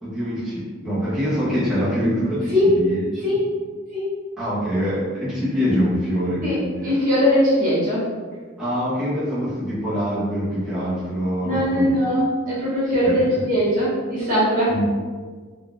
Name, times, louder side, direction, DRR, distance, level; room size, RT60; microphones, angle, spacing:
voice 1, 0.0-3.3 4.4-6.9 8.6-12.0 13.0-13.4 14.7-14.9, equal, 5° right, -13 dB, 0.7 m, -24 dB
voice 2, 6.8-8.0 11.4-14.7, equal, 45° right, -9 dB, 1.4 m, -20 dB
3.8 x 2.2 x 2.3 m, 1.5 s
head